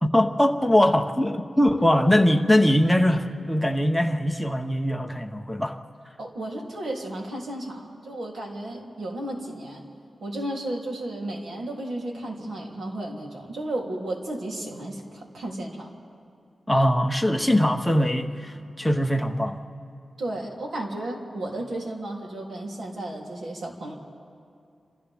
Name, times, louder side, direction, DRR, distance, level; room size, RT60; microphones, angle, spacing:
voice 1, 0.0-5.8 16.7-19.6, left 1 dB, ahead, 3 dB, 0.9 m, -21 dB
voice 2, 6.2-9.8 10.2-15.9 20.2-24.0, right 1 dB, 70° right, -1 dB, 3.0 m, -33 dB
29.5 x 27.0 x 3.5 m, 2.4 s
wide cardioid pair, 155°, 0 cm